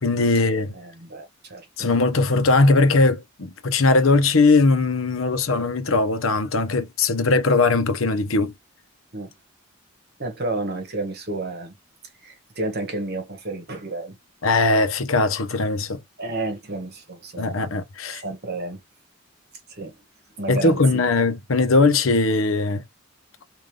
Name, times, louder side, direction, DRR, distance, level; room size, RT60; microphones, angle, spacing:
voice 1, 0.0-0.7 1.8-8.5 14.4-16.0 17.4-18.2 20.5-22.8, left 3 dB, 85° left, 0.8 m, -20 dB
voice 2, 0.7-1.9 9.1-9.3 10.2-11.8 12.2-14.2 16.2-17.7 18.2-18.8 19.8-19.9 20.4-21.0, right 2 dB, 50° right, 1.4 m, -31 dB
3.8 x 2.6 x 3.2 m
head